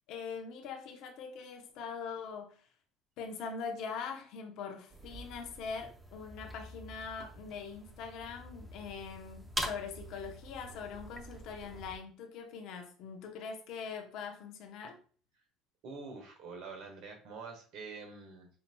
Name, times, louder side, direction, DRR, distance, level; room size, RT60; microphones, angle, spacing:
voice 1, 0.1-2.7 3.2-15.0, left 5 dB, 65° left, 3 dB, 0.9 m, -42 dB
sound 1, 4.9-12.0, right 1 dB, 15° right, 0.7 m, -45 dB
voice 2, 15.8-18.5, right 4 dB, 65° right, 3 dB, 1.2 m, -46 dB
5.6 x 2.8 x 2.2 m, 0.42 s
supercardioid pair, 85°, 0 cm